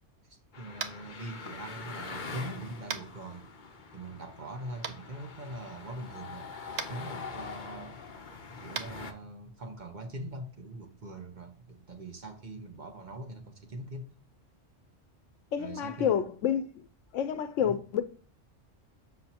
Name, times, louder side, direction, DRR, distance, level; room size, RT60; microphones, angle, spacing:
voice 1, 0.3-3.5 3.9-6.5 6.9-8.0 8.6-14.1 15.6-16.2 17.6-17.7, right 1 dB, 40° right, 1.0 m, -42 dB
sound 1, 0.5-9.1, left 4 dB, 45° left, 0.8 m, -44 dB
Tap, 0.8-1.0 2.9-3.1 4.8-4.9 6.7-6.9 8.7-8.9, right 7 dB, 60° right, 0.9 m, -35 dB
voice 2, 15.5-16.8 17.1-18.0, left 9 dB, 90° left, 1.0 m, -29 dB
6.5 x 5.9 x 2.8 m
omnidirectional pair, 1.2 m